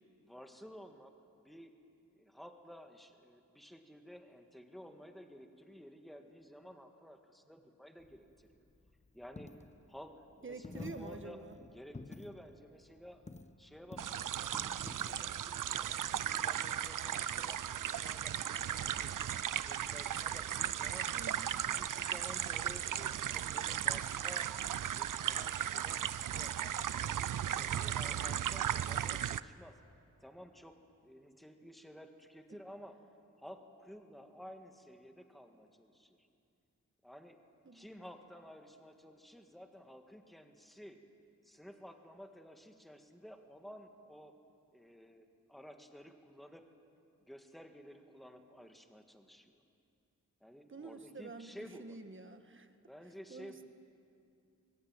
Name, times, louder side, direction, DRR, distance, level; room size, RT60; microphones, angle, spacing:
voice 1, 0.2-1.1 1.4-1.7 2.2-8.6 9.1-11.4 11.7-13.2 13.6-21.1 21.7-27.1 27.5-29.8 30.2-30.8 31.0-33.0 33.4-36.3 37.0-37.4 37.7-41.0 41.4-44.3 44.7-46.6 47.3-49.6 50.4-52.0 52.8-53.6, equal, ahead, 5 dB, 1.8 m, -53 dB
Coin (dropping), 8.0-16.5, left 2 dB, 20° left, 0.9 m, -52 dB
voice 2, 10.4-11.5 21.1-21.7 37.6-37.9 50.7-52.7 53.3-53.6, right 3 dB, 40° right, 8 dB, 1.5 m, -48 dB
sound 1, 14.0-29.4, right 10 dB, 85° right, 0.5 m, -36 dB
24.0 x 22.0 x 9.0 m, 2.5 s
wide cardioid pair, 105°, 31 cm